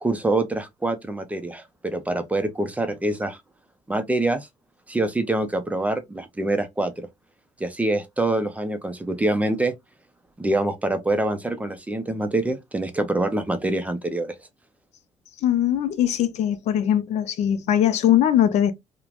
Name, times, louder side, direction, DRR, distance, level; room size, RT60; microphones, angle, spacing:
voice 1, 0.0-3.4 3.9-4.5 4.9-7.1 7.6-9.7 10.4-14.4, right 2 dB, 10° right, 0.4 m, -25 dB
voice 2, 15.4-18.7, left 10 dB, 65° left, 0.4 m, -21 dB
3.0 x 2.1 x 2.3 m
cardioid pair, 130°, 13 cm